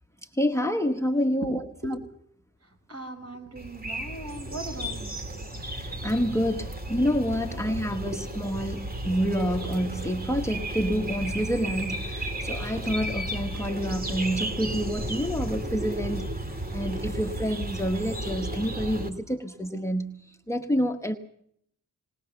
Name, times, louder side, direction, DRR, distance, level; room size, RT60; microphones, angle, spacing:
voice 1, 0.3-2.0 5.7-16.3 16.7-21.2, equal, 10° left, 7 dB, 1.1 m, -28 dB
voice 2, 2.9-5.3 8.0-8.2, right 2 dB, 45° right, 5 dB, 5.0 m, -38 dB
sound 1, 3.6-19.1, right 1 dB, 25° right, 2.5 m, -33 dB
20.0 x 19.5 x 6.8 m, 0.68 s
wide cardioid pair, 140°, 33 cm